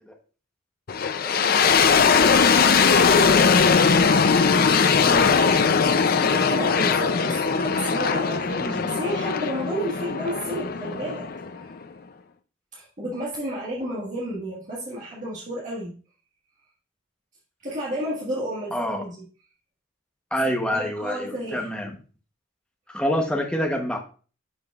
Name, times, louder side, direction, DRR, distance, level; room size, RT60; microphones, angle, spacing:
sound 1, 0.9-11.8, left 5 dB, 45° left, 0.4 m, -20 dB
voice 1, 1.2-3.7 6.0-11.3 12.7-16.0 17.6-19.2 20.7-21.9, right 1 dB, 35° right, -6 dB, 1.6 m, -32 dB
voice 2, 5.0-5.4 8.6-8.8 18.7-19.0 20.3-21.9 22.9-24.0, equal, 5° left, 2 dB, 0.9 m, -27 dB
10.5 x 5.0 x 2.4 m, 0.37 s
head